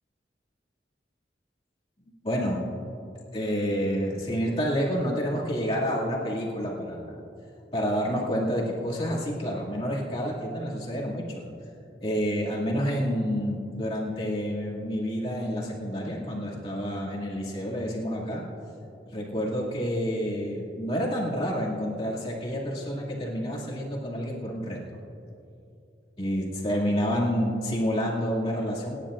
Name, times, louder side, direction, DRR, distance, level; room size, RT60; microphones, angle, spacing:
voice 1, 2.2-2.6 3.3-7.2 7.7-11.5 12.0-18.4 19.1-24.8 26.2-28.9, equal, 30° left, -5 dB, 2.4 m, -29 dB
28.5 x 10.5 x 2.5 m, 2.7 s
head